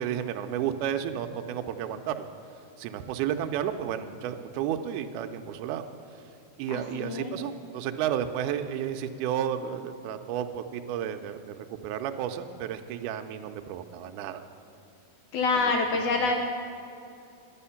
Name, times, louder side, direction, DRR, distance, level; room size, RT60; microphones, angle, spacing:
voice 1, 0.0-2.3 2.8-5.8 6.6-14.5 15.5-15.7 16.2-16.3, right 9 dB, 80° right, 6 dB, 1.9 m, -32 dB
voice 2, 6.7-7.3 15.3-16.3, left 3 dB, 75° left, 3 dB, 1.8 m, -26 dB
10.5 x 10.0 x 5.7 m, 2.6 s
omnidirectional pair, 4.0 m